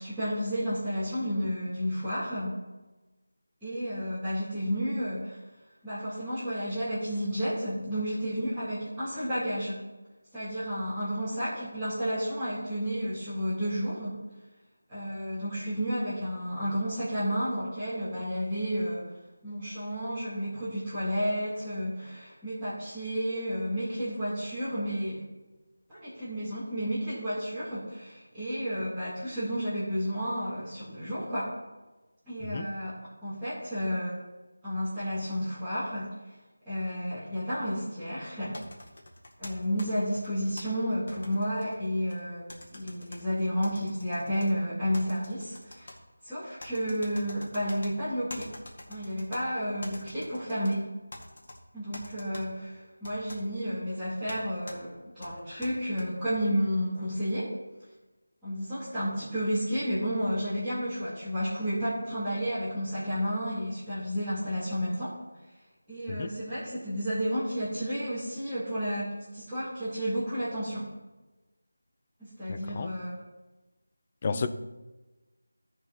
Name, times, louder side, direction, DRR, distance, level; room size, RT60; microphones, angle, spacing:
voice 1, 0.0-2.5 3.6-5.4 5.8-9.8 10.3-14.2 14.9-19.1 19.4-25.2 25.9-31.5 32.3-33.0 33.2-34.1 34.6-36.1 36.7-38.5 39.4-42.4 42.7-45.9 46.2-48.5 48.9-50.9 51.7-57.5 58.4-65.2 65.9-70.9 72.2-73.2 74.3-74.5, equal, ahead, -21 dB, 2.4 m, -31 dB
sound 1, 38.5-40.6 41.1-42.2 42.5-43.2 43.6-44.5 44.9-46.0 46.6-47.9 48.3-49.4 49.8-50.7 51.1-51.6 51.9-52.4 53.0-53.4 54.3-54.4 54.7-54.8 55.2-56.0, left 1 dB, 50° left, 1.9 m, -45 dB
voice 2, 72.5-72.9 74.2-74.5, left 5 dB, 25° left, 11 dB, 0.4 m, -31 dB
14.0 x 4.7 x 4.1 m, 1.2 s
figure-of-eight pair, 175°, 0 cm